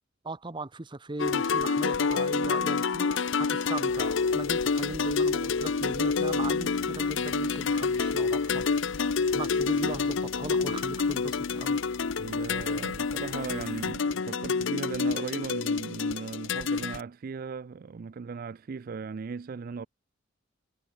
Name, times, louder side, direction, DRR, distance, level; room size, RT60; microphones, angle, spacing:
voice 1, 0.2-8.7 9.3-11.8, right 2 dB, 25° right, 0.8 m, -38 dB
sound 1, 1.2-17.0, left 5 dB, 65° left, 0.6 m, -28 dB
sound 2, 3.9-13.9, left 1 dB, 20° left, 1.0 m, -50 dB
voice 2, 12.2-19.9, right 5 dB, 45° right, 0.4 m, -37 dB
head